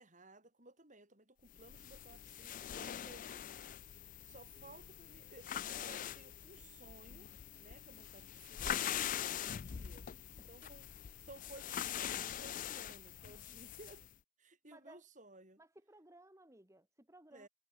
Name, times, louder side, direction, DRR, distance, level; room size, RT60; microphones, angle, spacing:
voice 1, 0.0-3.5 4.2-7.3 7.6-10.9 11.2-14.0 14.4-15.6 17.3-17.5, right 2 dB, 35° right, 5.6 m, -58 dB
sound 1, 1.5-14.1, left 10 dB, 40° left, 0.3 m, -43 dB
voice 2, 10.4-10.7 14.7-15.0 15.6-17.5, right 1 dB, 15° right, 2.1 m, -60 dB
head